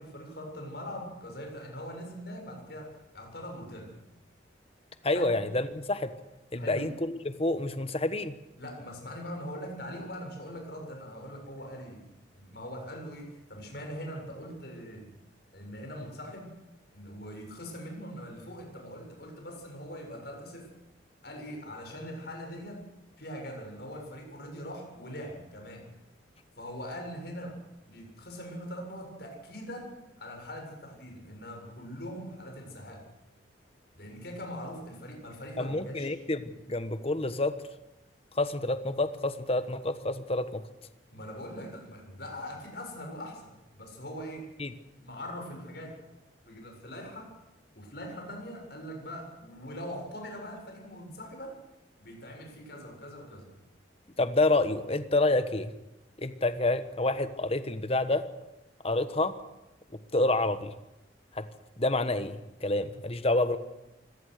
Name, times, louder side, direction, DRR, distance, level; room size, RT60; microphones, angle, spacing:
voice 1, 0.0-3.9 5.1-5.3 6.6-6.9 8.6-12.0 12.3-15.1 15.5-16.5 16.9-20.7 21.2-22.8 23.2-25.8 26.6-27.6 27.9-29.9 30.2-33.0 33.9-36.1 41.1-44.5 45.0-45.9 46.5-47.3 47.7-51.5 52.0-53.5, equal, 60° left, 2 dB, 7.4 m, -42 dB
voice 2, 5.0-6.1 6.5-8.3 35.6-37.5 38.3-40.6 44.6-44.7 54.2-55.7 56.2-58.2 58.8-59.3 60.1-60.7 61.3-61.4 61.8-63.6, left 2 dB, 30° left, 11 dB, 1.2 m, -28 dB
25.0 x 18.0 x 6.7 m, 0.96 s
head